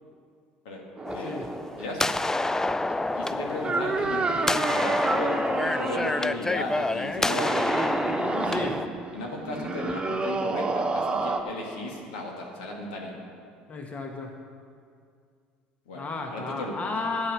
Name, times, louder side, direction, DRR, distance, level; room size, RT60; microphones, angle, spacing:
sound 1, 1.0-8.9, left 2 dB, 10° left, 0.4 m, -28 dB
sound 2, 1.0-11.4, right 3 dB, 20° right, 1.3 m, -30 dB
voice 1, 1.2-1.5 8.5-8.8 13.7-14.3 15.9-17.3, left 3 dB, 35° left, 2 dB, 1.7 m, -32 dB
voice 2, 1.8-2.1 3.2-5.3 5.7-7.6 8.0-8.7 9.1-13.1 15.9-16.0 16.3-16.8, left 2 dB, 80° left, -1 dB, 2.1 m, -35 dB
12.5 x 7.9 x 6.4 m, 2.3 s
hypercardioid pair, 65°, 4 cm